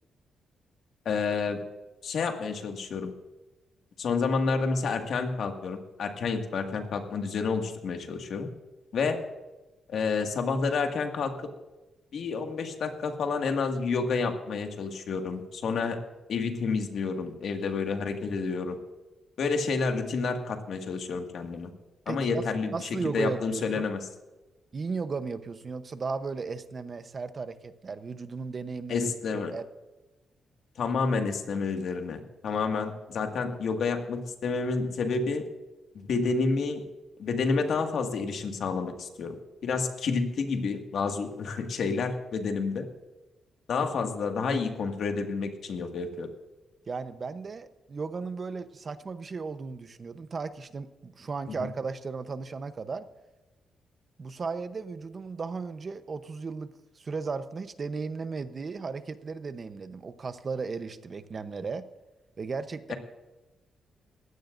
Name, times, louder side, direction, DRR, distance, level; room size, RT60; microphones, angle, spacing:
voice 1, 1.1-1.6 2.0-3.1 4.0-8.5 8.9-9.2 9.9-11.5 12.1-16.0 16.3-18.8 19.4-21.7 22.1-22.8 23.1-24.0 28.9-29.5 30.8-35.5 35.9-36.8 37.2-39.4 39.6-42.9 43.7-46.3 51.5-51.6 62.9-63.0, left 4 dB, 65° left, 4 dB, 1.9 m, -29 dB
voice 2, 22.1-22.4 22.7-23.8 24.7-29.6 46.9-53.1 54.2-61.9 62.4-62.9, right 4 dB, 35° right, 11 dB, 0.9 m, -35 dB
20.5 x 16.0 x 2.6 m, 1.1 s
cardioid pair, 135°, 0 cm